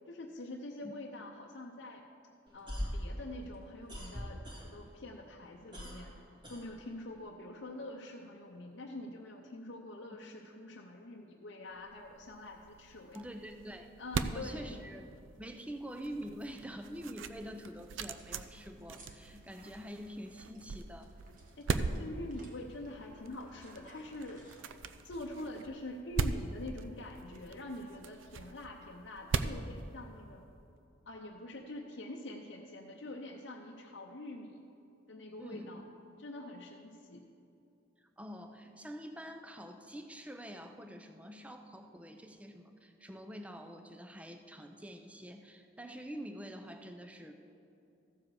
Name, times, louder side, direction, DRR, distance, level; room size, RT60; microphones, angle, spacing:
voice 1, 0.1-2.1 2.5-6.2 6.5-13.2 14.0-14.8 21.6-24.5 25.0-30.4 31.1-34.6 35.1-35.8 36.2-37.2, left 1 dB, 65° left, -1 dB, 0.7 m, -45 dB
sound 1, 2.5-5.0 5.3-7.2, equal, 25° right, 1.8 m, -41 dB
sound 2, 11.8-30.6, right 4 dB, 80° right, 0.5 m, -41 dB
voice 2, 13.1-13.9 14.3-15.1 15.4-21.1 35.4-35.8 38.0-47.3, equal, 5° right, 6 dB, 0.5 m, -46 dB
sound 3, 16.1-25.8, right 1 dB, 45° right, 1.5 m, -61 dB
14.5 x 7.3 x 4.8 m, 2.7 s
head